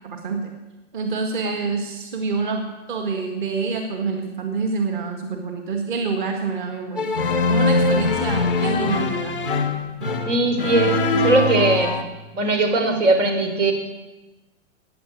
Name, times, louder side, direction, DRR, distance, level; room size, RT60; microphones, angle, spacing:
voice 1, 0.0-0.5 0.9-2.6 2.9-9.5, right 4 dB, 40° right, 4 dB, 1.8 m, -27 dB
sound 1, 7.0-12.0, left 3 dB, 10° right, 0.4 m, -22 dB
voice 2, 10.3-11.9 12.3-13.7, right 2 dB, 85° right, 5 dB, 4.0 m, -20 dB
15.5 x 9.4 x 9.2 m, 1.1 s
hypercardioid pair, 180°, 37 cm